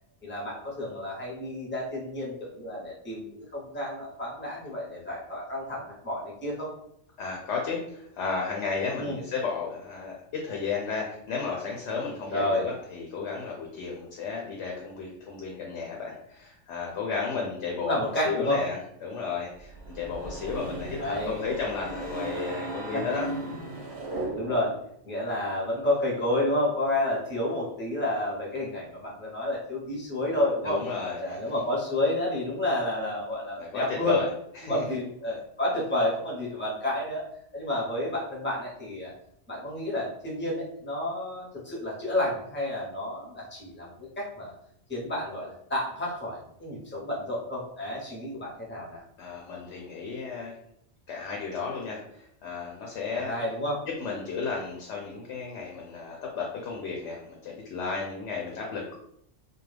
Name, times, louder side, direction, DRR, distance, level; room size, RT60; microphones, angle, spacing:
voice 1, 0.2-6.7 9.0-9.2 12.3-12.7 17.4-17.5 17.8-18.6 21.0-21.4 22.9-23.1 24.1-24.8 25.0-30.8 31.2-34.2 34.6-37.2 37.5-39.1 39.5-44.5 44.9-49.0 53.1-53.8, left 1 dB, 10° left, -5 dB, 0.6 m, -30 dB
voice 2, 7.2-23.3 30.6-31.5 33.6-34.3 34.6-34.8 49.2-50.5 51.1-53.3 54.0-58.9, left 5 dB, 70° left, -1 dB, 0.8 m, -33 dB
sound 1, 19.6-24.9, right 2 dB, 60° right, 0.8 m, -36 dB
2.3 x 2.1 x 3.1 m, 0.72 s
omnidirectional pair, 1.3 m